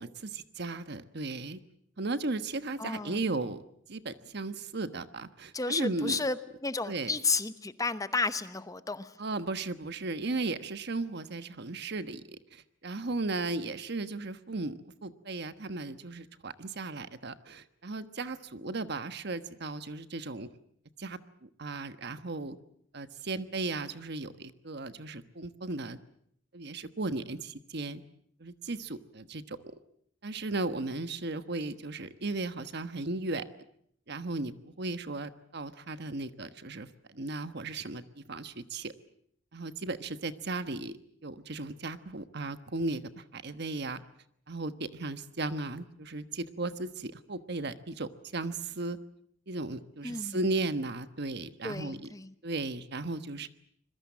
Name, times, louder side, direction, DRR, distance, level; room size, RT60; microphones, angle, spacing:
voice 1, 0.0-1.6 2.0-3.6 3.9-6.2 6.8-7.1 9.2-20.5 21.0-22.6 22.9-26.0 26.5-28.0 28.4-29.8 30.2-33.5 34.1-38.9 39.5-44.0 44.5-49.0 49.5-52.0 52.4-53.5, right 2 dB, 60° right, 11 dB, 1.3 m, -36 dB
voice 2, 2.8-3.2 5.5-6.4 6.6-9.1 50.0-50.4 51.6-52.3, left 4 dB, 20° left, 12 dB, 0.9 m, -32 dB
26.0 x 22.0 x 7.3 m, 0.68 s
head